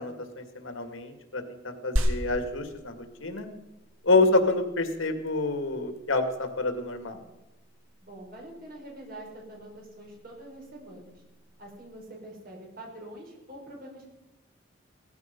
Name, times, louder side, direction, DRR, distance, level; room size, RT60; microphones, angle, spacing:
voice 1, 0.0-2.9 3.2-3.5 4.0-7.2, left 3 dB, 80° left, 7 dB, 2.2 m, -27 dB
sound 1, 2.0-11.9, equal, 85° right, 1.9 m, -37 dB
voice 2, 8.0-11.2 11.6-14.1, right 1 dB, 45° right, -1 dB, 5.3 m, -45 dB
17.5 x 14.5 x 5.4 m, 0.96 s
head